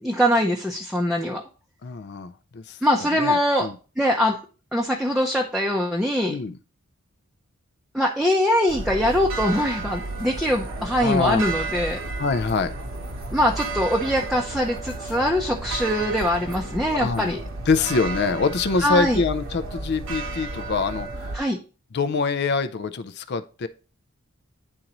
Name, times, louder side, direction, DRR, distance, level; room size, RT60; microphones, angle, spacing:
voice 1, 0.0-1.4 2.8-3.7 4.0-4.4 4.7-6.4 7.9-12.0 13.3-17.4 18.8-19.2 21.3-21.6, equal, ahead, -1 dB, 0.6 m, -22 dB
voice 2, 1.8-2.8 3.1-3.7 6.3-6.6 11.0-11.4 12.2-12.7 16.9-17.3 17.7-21.3 21.9-23.7, left 4 dB, 50° left, 12 dB, 0.4 m, -25 dB
sound 1, 8.7-21.4, right 2 dB, 60° right, 1.0 m, -32 dB
9.9 x 3.9 x 3.0 m, 0.35 s
head